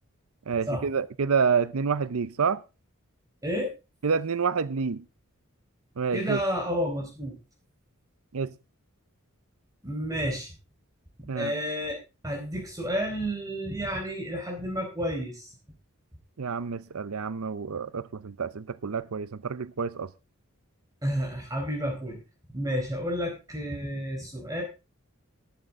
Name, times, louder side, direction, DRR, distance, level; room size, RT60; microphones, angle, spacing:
voice 1, 0.5-2.6 4.0-5.0 6.0-6.4 8.3-8.5 11.3-11.5 16.4-20.1, right 5 dB, 85° right, 0.6 m, -28 dB
voice 2, 6.1-7.3 9.8-10.5 11.3-12.0 12.2-15.5 21.0-22.2 22.5-24.6, equal, 15° right, 4.4 m, -30 dB
13.5 x 12.5 x 3.6 m
head